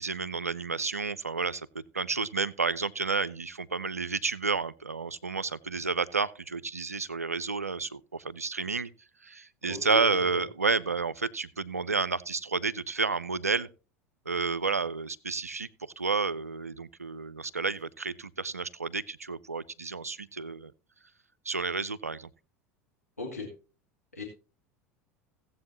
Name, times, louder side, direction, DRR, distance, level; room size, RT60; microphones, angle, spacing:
voice 1, 0.0-8.9 9.2-13.7 14.3-15.7 16.0-20.7 21.5-22.3, right 4 dB, 85° right, 0.4 m, -31 dB
voice 2, 9.7-10.4 23.2-23.5 24.1-24.2, left 3 dB, 85° left, 1.8 m, -37 dB
17.0 x 7.7 x 2.9 m
figure-of-eight pair, 75°, 8 cm